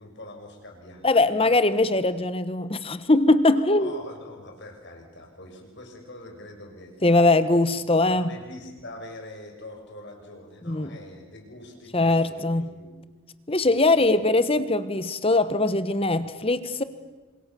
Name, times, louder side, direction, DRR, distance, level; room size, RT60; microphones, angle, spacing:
voice 1, 0.0-1.5 1.9-2.0 3.5-7.0 7.5-12.9 13.6-14.2, left 1 dB, 55° left, 6.4 m, -44 dB
voice 2, 1.0-3.9 7.0-8.3 10.7-11.0 11.9-12.7 13.5-16.8, left 2 dB, 25° left, 1.3 m, -21 dB
30.0 x 26.5 x 7.1 m
head